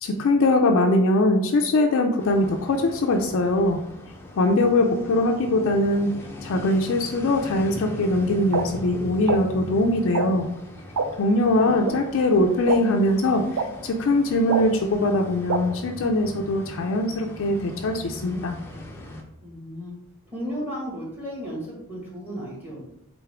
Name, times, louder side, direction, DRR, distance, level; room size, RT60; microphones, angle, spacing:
voice 1, 0.0-3.8 4.4-10.5 11.2-18.6, left 2 dB, 60° left, 3 dB, 0.4 m, -22 dB
sound 1, 2.2-19.2, left 1 dB, 10° left, 0.5 m, -40 dB
sound 2, 8.5-8.6 9.3-9.4 10.1-10.3 11.0-11.1 11.9-12.0 12.7-12.8 13.6-13.7 14.5-14.6 15.5-15.6, right 5 dB, 65° right, 0.4 m, -23 dB
voice 2, 11.6-12.0 19.4-20.0 20.3-22.8, equal, 10° right, -5 dB, 1.4 m, -34 dB
3.7 x 3.6 x 3.3 m, 0.82 s
head